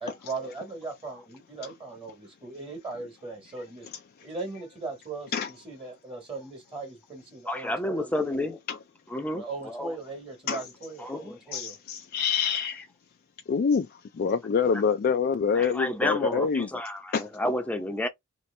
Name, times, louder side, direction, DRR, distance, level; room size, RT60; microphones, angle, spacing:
voice 1, 0.0-3.9 4.2-8.5 9.3-11.8, right 3 dB, 25° right, 1.3 m, -39 dB
voice 2, 7.5-8.6 9.1-9.9 11.1-11.4 15.6-18.1, left 1 dB, 5° left, 0.6 m, -30 dB
voice 3, 11.5-12.9 13.5-13.9 14.2-16.7 17.1-17.3, left 6 dB, 45° left, 0.3 m, -26 dB
3.1 x 2.9 x 3.2 m
head